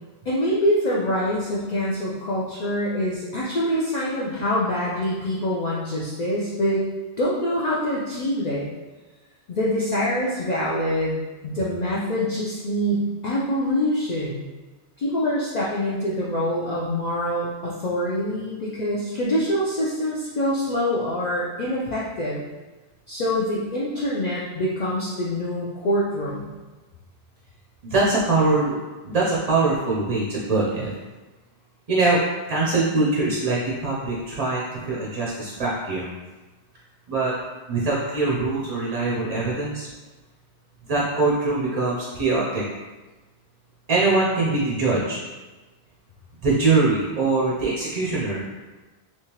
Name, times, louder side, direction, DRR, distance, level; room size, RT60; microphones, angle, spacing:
voice 1, 0.3-6.8 7.2-8.7 9.5-14.4 15.0-22.4 23.1-26.5, equal, 50° left, -6 dB, 0.5 m, -25 dB
voice 2, 27.8-28.8 29.0-30.9 31.9-32.2 32.5-36.1 37.1-37.3 37.7-39.9 40.9-42.6 43.9-45.2 46.4-48.4, right 3 dB, 45° right, -5 dB, 0.5 m, -22 dB
3.5 x 2.9 x 2.9 m, 1.2 s
omnidirectional pair, 1.1 m